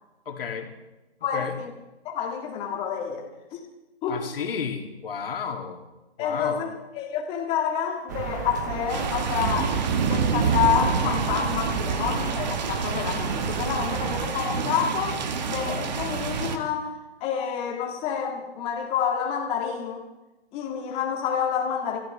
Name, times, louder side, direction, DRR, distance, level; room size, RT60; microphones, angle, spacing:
voice 1, 0.3-0.7 1.3-1.6 4.1-5.8 6.2-6.7, left 6 dB, 60° left, 3 dB, 2.6 m, -32 dB
voice 2, 1.2-1.7 2.1-3.6 4.0-4.2 6.2-9.8 10.0-15.2 15.5-16.9 17.2-20.0 20.5-22.0, left 8 dB, 20° left, 2 dB, 1.8 m, -28 dB
sound 1, 8.1-14.3, right 7 dB, 20° right, 0.5 m, -32 dB
sound 2, 8.9-16.6, right 5 dB, 40° right, 1.5 m, -27 dB
25.0 x 14.5 x 3.4 m, 1.1 s
hypercardioid pair, 150°, 32 cm